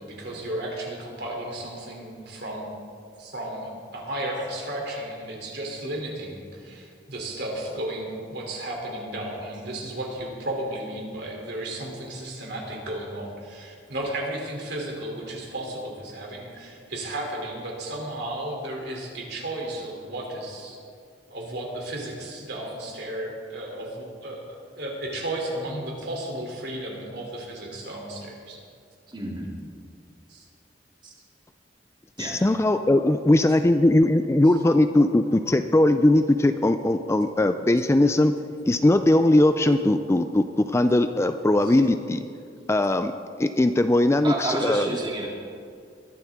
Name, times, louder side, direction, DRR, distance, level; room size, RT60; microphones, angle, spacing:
voice 1, 0.0-2.7 3.2-20.8 21.3-28.6 30.3-30.4, right 1 dB, 65° right, -1 dB, 3.2 m, -34 dB
voice 2, 29.1-29.5 32.2-32.4 41.6-41.7 44.2-45.3, right 2 dB, 25° right, -4 dB, 2.7 m, -30 dB
voice 3, 32.2-38.3 38.6-42.2 42.7-43.1 43.4-44.9, left 1 dB, 15° left, 9 dB, 0.4 m, -20 dB
21.5 x 12.0 x 3.6 m, 2.3 s
head